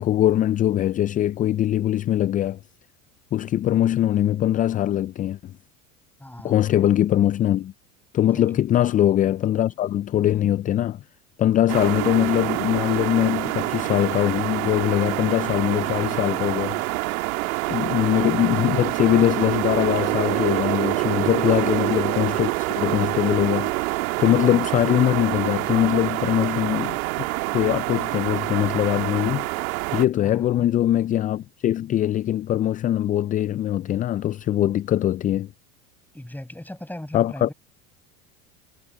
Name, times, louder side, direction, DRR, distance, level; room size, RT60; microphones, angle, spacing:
voice 1, 0.0-2.6 3.3-5.5 6.4-7.7 8.1-11.0 11.4-16.8 17.7-23.8 24.2-27.3 27.5-29.5 29.9-35.5 37.1-37.5, left 12 dB, 20° left, 0.3 m, -22 dB
voice 2, 6.2-6.6 8.2-8.6 21.2-22.2 30.2-30.7 36.1-37.5, left 1 dB, 5° left, 6.7 m, -39 dB
sound 1, 11.7-30.1, right 22 dB, 70° right, 2.2 m, -26 dB
hypercardioid pair, 85°, 43 cm